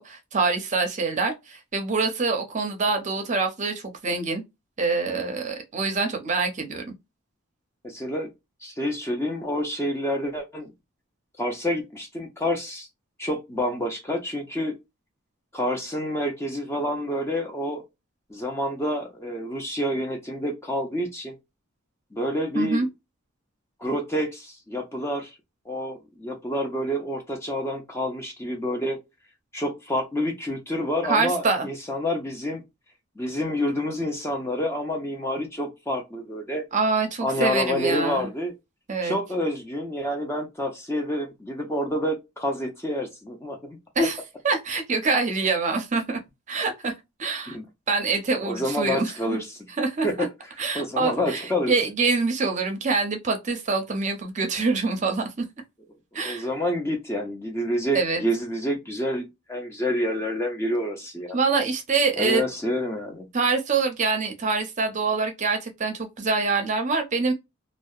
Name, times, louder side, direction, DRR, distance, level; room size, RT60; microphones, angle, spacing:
voice 1, 0.0-4.4 4.8-6.9 22.5-22.9 31.1-31.7 36.7-38.3 38.9-39.2 44.0-44.2 44.4-46.2 46.5-46.9 47.2-47.6 47.9-49.4 49.8-50.1 50.6-55.4 56.1-56.5 57.9-58.2 61.3-62.4 63.3-67.3, right 4 dB, 35° right, 0.5 m, -25 dB
voice 2, 7.8-8.3 8.6-10.7 11.4-12.9 13.2-14.7 15.5-17.8 18.3-21.3 22.1-22.9 23.8-25.3 25.7-29.0 29.5-32.6 33.2-36.6 37.2-38.5 39.0-44.1 47.5-47.7 48.4-49.5 50.0-50.3 50.7-51.7 56.2-61.4 62.2-63.3, equal, 10° left, 0.5 m, -28 dB
2.7 x 2.0 x 2.3 m
head